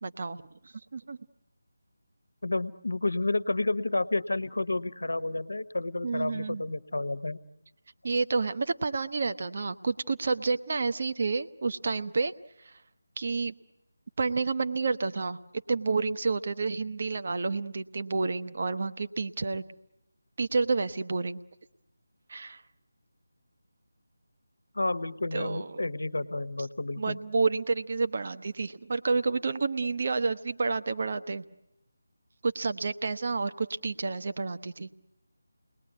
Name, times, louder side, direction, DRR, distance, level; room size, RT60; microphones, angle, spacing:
voice 1, 0.0-0.4 0.6-1.2 6.0-6.6 8.0-12.3 12.6-12.8 13.2-13.5 14.2-15.4 15.7-19.6 20.4-21.4 22.3-22.6 25.3-25.9 27.0-31.4 32.4-35.0, right 4 dB, 45° right, 10 dB, 1.0 m, -29 dB
voice 2, 2.4-7.4 24.7-27.2, left 2 dB, 65° left, 14 dB, 1.2 m, -30 dB
29.5 x 20.5 x 9.4 m, 0.95 s
figure-of-eight pair, 160°, 0 cm